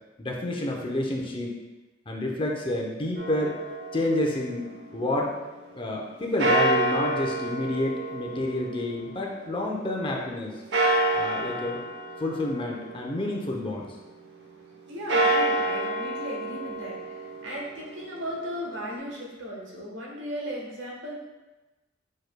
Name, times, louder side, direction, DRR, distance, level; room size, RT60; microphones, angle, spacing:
voice 1, 0.2-1.5 2.1-3.5 3.9-5.3 5.7-10.5 11.1-11.8 12.2-13.9, left 1 dB, 30° left, -1 dB, 0.7 m, -29 dB
sound 1, 3.2-5.3 6.4-9.8 10.7-13.7 14.9-18.9, right 1 dB, 65° right, 0.7 m, -29 dB
voice 2, 14.9-21.2, equal, 80° right, -3 dB, 1.2 m, -36 dB
4.9 x 4.8 x 2.2 m, 1.1 s
head